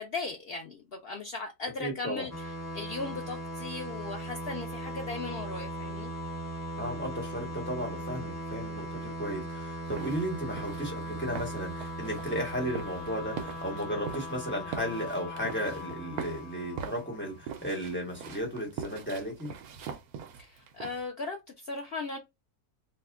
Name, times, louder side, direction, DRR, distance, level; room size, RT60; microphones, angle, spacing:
voice 1, 0.0-6.1 20.4-22.2, left 3 dB, 85° left, 0.5 m, -38 dB
voice 2, 1.8-2.3 3.0-3.2 6.8-19.5, equal, 10° left, 1.1 m, -35 dB
sound 1, 2.3-17.7, right 1 dB, 10° right, 1.0 m, -39 dB
sound 2, 9.8-21.1, right 7 dB, 75° right, 1.1 m, -42 dB
2.7 x 2.2 x 3.5 m
omnidirectional pair, 1.6 m